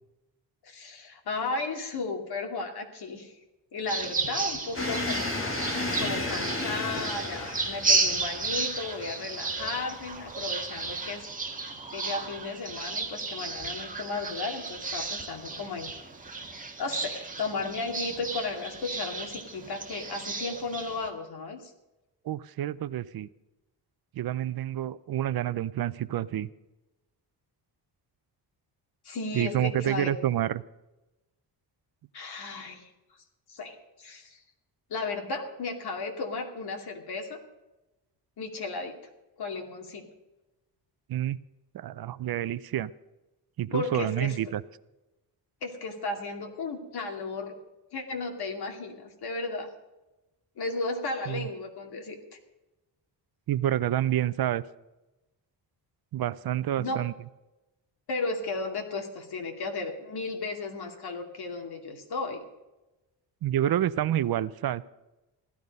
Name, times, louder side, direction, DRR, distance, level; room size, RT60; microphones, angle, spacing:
voice 1, 0.6-3.3 3.7-5.4 6.0-11.2 11.9-15.9 16.8-21.7 29.0-30.1 32.1-32.9 33.5-34.4 34.9-37.4 38.4-39.0 39.4-40.1 43.7-44.4 45.6-47.5 47.9-49.7 50.6-52.4 56.8-57.1 58.1-62.4, left 3 dB, 60° left, 3 dB, 2.6 m, -34 dB
sound 1, 3.9-21.1, right 3 dB, 20° right, 1.9 m, -33 dB
sound 2, 4.7-11.2, left 2 dB, 30° left, 2.4 m, -34 dB
voice 2, 22.3-23.3 24.2-26.5 29.3-30.6 41.1-41.4 41.7-42.9 43.6-44.6 51.3-51.5 53.5-54.6 56.1-57.1 63.4-64.8, right 12 dB, 60° right, 16 dB, 0.6 m, -28 dB
16.0 x 13.0 x 5.3 m, 1.0 s
wide cardioid pair, 150°, 42 cm